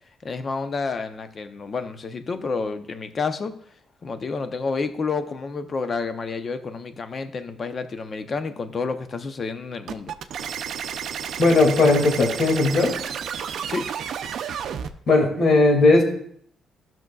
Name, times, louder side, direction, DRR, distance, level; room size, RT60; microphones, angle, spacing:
voice 1, 0.2-3.5 4.0-10.1 13.7-13.9, left 4 dB, 45° left, 9 dB, 0.7 m, -29 dB
sound 1, 9.9-14.9, right 8 dB, 70° right, 0.5 m, -31 dB
voice 2, 11.4-12.9 15.1-16.0, left 2 dB, 60° left, 1 dB, 2.1 m, -17 dB
13.5 x 6.1 x 2.3 m, 0.65 s
cardioid pair, 90°, 0 cm